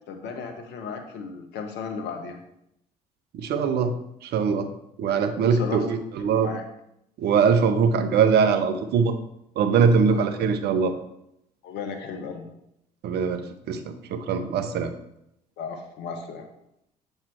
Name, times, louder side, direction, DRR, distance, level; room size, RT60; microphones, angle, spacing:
voice 1, 0.1-2.4 5.5-6.0 6.4-6.6 10.0-10.3 11.6-12.5 15.6-16.4, left 5 dB, 60° left, 4 dB, 0.9 m, -35 dB
voice 2, 3.3-3.9 4.2-4.7 5.0-6.5 7.2-9.1 9.6-10.9 13.0-13.4 13.7-14.9, right 6 dB, 55° right, 9 dB, 0.8 m, -22 dB
7.2 x 3.3 x 4.5 m, 0.79 s
hypercardioid pair, 60°, 20 cm